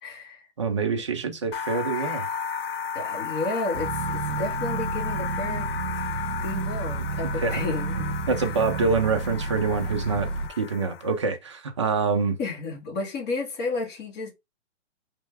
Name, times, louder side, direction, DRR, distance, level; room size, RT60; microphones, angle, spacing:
voice 1, 0.0-0.4 2.9-5.7 6.4-8.5 12.4-14.3, left 3 dB, 20° left, 1.5 m, -32 dB
voice 2, 0.6-2.3 7.4-7.6 8.3-10.3 10.6-12.4, right 4 dB, 25° right, 0.5 m, -25 dB
sound 1, 1.5-11.2, left 7 dB, 55° left, 0.5 m, -34 dB
sound 2, 3.7-10.5, right 3 dB, 65° right, 1.3 m, -31 dB
3.4 x 3.2 x 4.7 m
hypercardioid pair, 165°, 37 cm